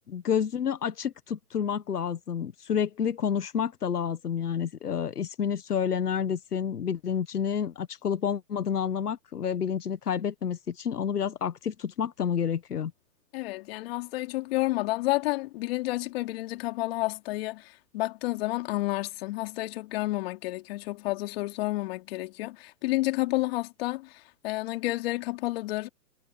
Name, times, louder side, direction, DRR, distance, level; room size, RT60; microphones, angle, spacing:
voice 1, 0.0-12.9, left 7 dB, 90° left, 1.5 m, -29 dB
voice 2, 13.3-25.9, left 19 dB, 40° left, 3.3 m, -30 dB
hypercardioid pair, 145°, 45 cm